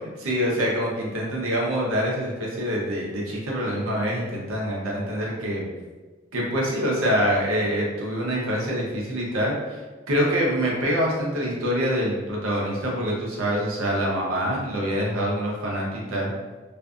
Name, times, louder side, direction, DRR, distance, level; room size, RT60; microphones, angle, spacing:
voice 1, 0.2-5.7 6.3-9.8 10.1-16.3, equal, 90° right, -3 dB, 0.7 m, -25 dB
2.5 x 2.4 x 2.3 m, 1.3 s
head